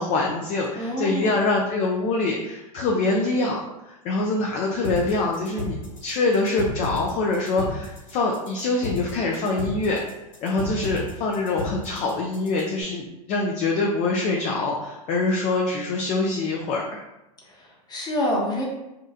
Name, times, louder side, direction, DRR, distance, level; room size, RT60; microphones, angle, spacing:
voice 1, 0.0-3.6 3.9-10.0 10.4-17.0, left 3 dB, 35° left, -1 dB, 0.4 m, -24 dB
voice 2, 0.7-1.4 17.4-18.6, equal, 20° left, -3 dB, 0.8 m, -27 dB
sound 1, 4.8-12.8, left 2 dB, 60° left, 1.1 m, -32 dB
2.7 x 2.4 x 2.3 m, 0.95 s
hypercardioid pair, 100°, 20 cm